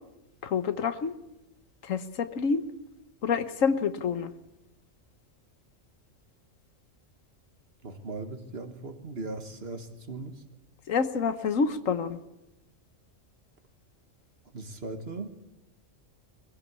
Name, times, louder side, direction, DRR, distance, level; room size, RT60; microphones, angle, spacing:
voice 1, 0.4-1.1 1.8-2.6 3.2-4.3 10.9-12.2, left 5 dB, 85° left, 12 dB, 1.5 m, -27 dB
voice 2, 7.8-10.3 14.5-15.3, right 3 dB, 50° right, 7 dB, 1.9 m, -38 dB
22.0 x 16.0 x 8.3 m, 0.91 s
omnidirectional pair, 1.3 m